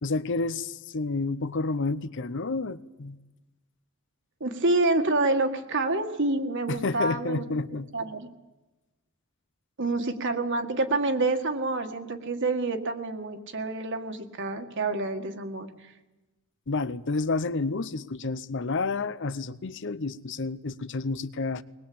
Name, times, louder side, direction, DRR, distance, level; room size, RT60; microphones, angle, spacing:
voice 1, 0.0-3.2 6.7-7.9 16.7-21.6, left 3 dB, 55° left, 16 dB, 0.8 m, -30 dB
voice 2, 4.4-7.5 7.9-8.3 9.8-15.9, right 2 dB, 55° right, 6 dB, 1.9 m, -27 dB
21.0 x 20.5 x 8.7 m, 1.1 s
head